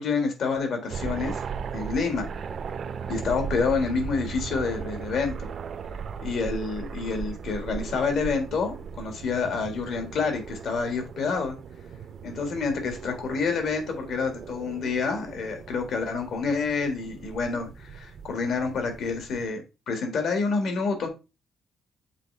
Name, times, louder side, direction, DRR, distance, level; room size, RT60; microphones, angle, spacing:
voice 1, 0.0-1.4 1.7-2.3 3.1-5.5 6.2-11.6 12.2-21.1, left 4 dB, 60° left, 5 dB, 1.7 m, -28 dB
fnk bimotore beechcraft, 0.9-19.5, right 6 dB, 45° right, 0.5 m, -37 dB
7.5 x 4.2 x 3.3 m, 0.28 s
cardioid pair, 145°, 0 cm